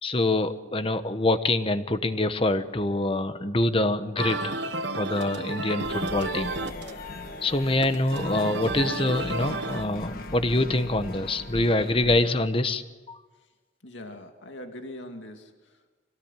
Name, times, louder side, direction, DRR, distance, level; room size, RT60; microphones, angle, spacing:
voice 1, 0.0-4.6 5.0-6.5 7.4-13.2, left 2 dB, 30° left, 10 dB, 1.1 m, -25 dB
sound 1, 4.2-9.9, right 2 dB, 65° right, 1.3 m, -32 dB
sound 2, 5.8-12.3, left 2 dB, 50° left, 1.5 m, -39 dB
voice 2, 13.8-15.9, left 1 dB, 75° left, 5 dB, 2.4 m, -42 dB
25.5 x 18.5 x 9.1 m, 1.2 s
head